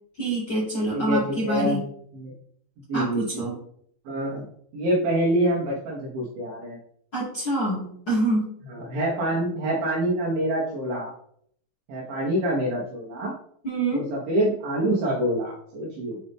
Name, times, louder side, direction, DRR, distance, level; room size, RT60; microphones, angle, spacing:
voice 1, 0.2-1.8 2.9-3.5 7.1-8.5 13.6-14.0, right 1 dB, 35° left, -7 dB, 1.8 m, -26 dB
voice 2, 0.9-1.8 2.1-2.3 2.9-3.4 4.1-4.5 4.7-6.8 8.7-11.1 11.9-13.3 13.9-16.2, right 1 dB, 85° right, -3 dB, 2.0 m, -26 dB
7.7 x 4.0 x 3.6 m, 0.66 s
omnidirectional pair, 5.6 m